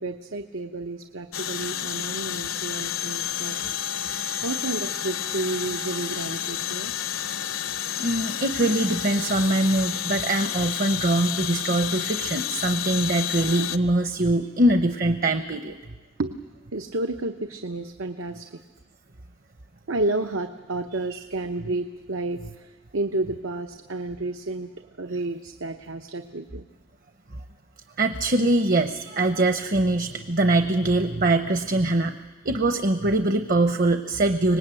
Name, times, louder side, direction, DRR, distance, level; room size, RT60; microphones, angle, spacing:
voice 1, 0.0-3.8 4.4-7.2 16.2-16.4 16.7-18.6 19.9-24.7 25.0-26.6, right 2 dB, 85° right, 7 dB, 0.9 m, -31 dB
sound 1, 1.3-13.8, left 10 dB, 85° left, 0.8 m, -30 dB
voice 2, 8.0-15.8 21.1-21.2 28.0-32.1 32.4-34.6, right 2 dB, 45° right, 8 dB, 0.8 m, -23 dB
24.5 x 20.0 x 9.0 m, 1.3 s
head